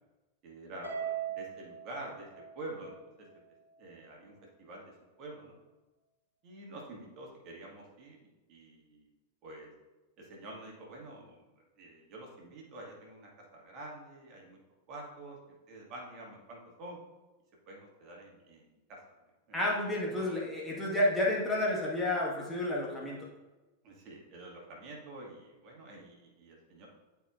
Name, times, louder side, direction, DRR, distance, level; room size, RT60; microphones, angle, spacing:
voice 1, 0.4-2.3 2.5-2.9 3.8-4.3 4.6-4.9 5.2-5.6 6.4-9.1 9.4-9.7 10.2-11.5 11.8-14.6 14.9-15.4 15.7-17.0 17.7-19.0 19.5-19.6 20.1-20.3 23.8-26.9, right 2 dB, 40° right, -2 dB, 1.8 m, -47 dB
Harp, 0.8-3.3, right 8 dB, 90° left, 2.0 m, -40 dB
voice 2, 19.5-23.3, left 1 dB, 10° left, -4 dB, 1.5 m, -30 dB
11.0 x 4.6 x 2.4 m, 1.1 s
figure-of-eight pair, 90°, 0 cm